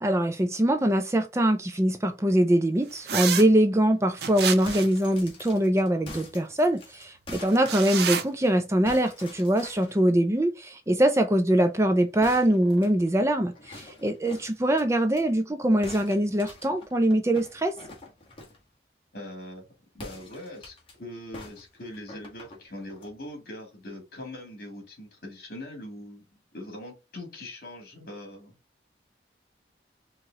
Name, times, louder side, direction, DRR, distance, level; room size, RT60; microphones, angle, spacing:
voice 1, 0.0-17.8, right 1 dB, 15° right, 0.4 m, -23 dB
sound 1, 3.1-3.4 4.2-5.0 7.6-8.2, right 7 dB, 60° right, 0.7 m, -28 dB
sound 2, 4.6-8.5 8.9-10.0 12.2-15.2 15.8-18.7 19.9-20.9 21.3-23.1, left 2 dB, 30° left, 1.5 m, -46 dB
voice 2, 19.1-19.7 19.9-26.2 26.5-28.5, left 1 dB, 55° left, 2.3 m, -41 dB
4.6 x 3.0 x 3.6 m
head